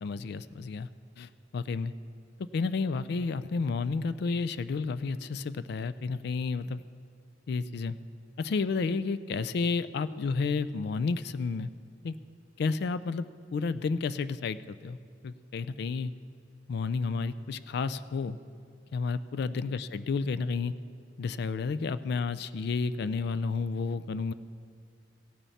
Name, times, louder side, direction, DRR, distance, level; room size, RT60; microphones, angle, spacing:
voice 1, 0.0-0.9 1.2-1.9 2.5-6.8 7.5-8.0 8.4-11.7 12.0-12.1 12.6-13.2 13.5-15.0 15.2-16.1 16.7-18.4 18.9-20.7 21.2-24.3, left 4 dB, 60° left, 14 dB, 0.4 m, -31 dB
16.5 x 9.0 x 4.2 m, 2.2 s
head